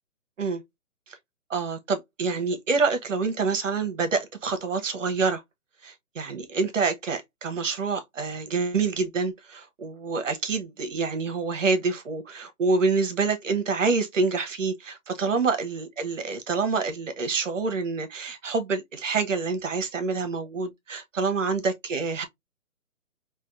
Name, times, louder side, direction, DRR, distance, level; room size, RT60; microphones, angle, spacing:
voice 1, 1.5-5.4 5.8-22.2, right 4 dB, 60° right, 1.0 m, -27 dB
4.8 x 2.6 x 2.4 m
hypercardioid pair, 160°, 44 cm